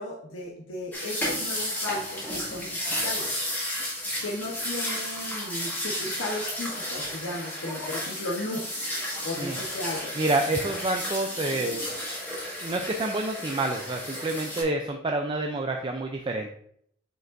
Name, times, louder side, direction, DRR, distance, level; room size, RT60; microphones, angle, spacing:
voice 1, 0.0-3.3 4.2-8.6 9.2-10.1, left 1 dB, 80° left, -3 dB, 1.0 m, -35 dB
sound 1, 0.9-14.6, left 1 dB, 10° left, 1.7 m, -33 dB
voice 2, 10.2-11.8 12.6-16.5, right 2 dB, 25° right, 3 dB, 0.4 m, -28 dB
7.6 x 5.1 x 2.6 m, 0.67 s
head